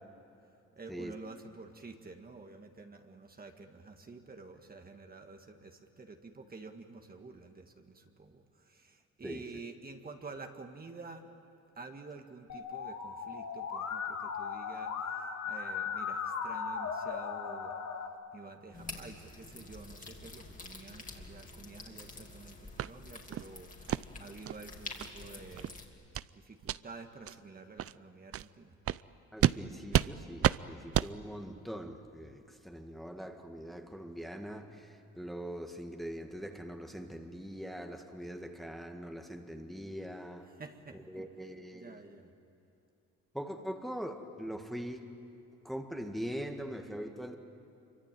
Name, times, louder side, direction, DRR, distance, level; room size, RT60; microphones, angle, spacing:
voice 1, 0.7-11.3 11.8-17.7 18.3-25.7 26.3-28.8 40.5-41.2 41.7-42.3, right 3 dB, 30° right, 4 dB, 1.9 m, -50 dB
Musical instrument, 12.5-18.1, left 6 dB, 55° left, 2.4 m, -37 dB
sound 1, 18.7-25.8, left 3 dB, 25° left, 3.3 m, -48 dB
sound 2, 22.8-22.9 23.3-23.5 23.9-24.0 24.5-24.6 25.0-25.1 25.5-25.7 26.1-26.3 26.6-26.8 27.3-27.4 27.8-27.9 28.3-28.5 28.9-29.0 29.4-29.6 29.9-30.1 30.4-30.6 30.9-31.1, right 11 dB, 50° right, 0.5 m, -29 dB
voice 2, 29.3-40.5 40.9-42.0 43.3-45.1 45.6-47.4, equal, ahead, 4 dB, 1.9 m, -42 dB
26.0 x 24.5 x 9.2 m, 2.7 s
cardioid pair, 90°, 30 cm